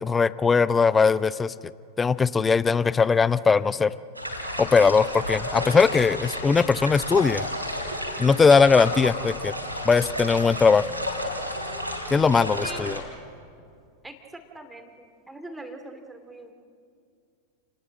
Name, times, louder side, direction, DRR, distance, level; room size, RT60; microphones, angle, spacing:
voice 1, 0.0-1.5 2.0-3.9 4.6-7.5 8.2-9.5 9.8-10.8 12.1-13.0, left 5 dB, 15° left, 18 dB, 0.5 m, -20 dB
sound 1, 4.2-13.0, equal, 90° right, 4.2 m, -32 dB
voice 2, 14.0-16.5, right 2 dB, 5° right, 6 dB, 2.6 m, -42 dB
29.5 x 19.5 x 7.7 m, 2.3 s
figure-of-eight pair, 90°, 0 cm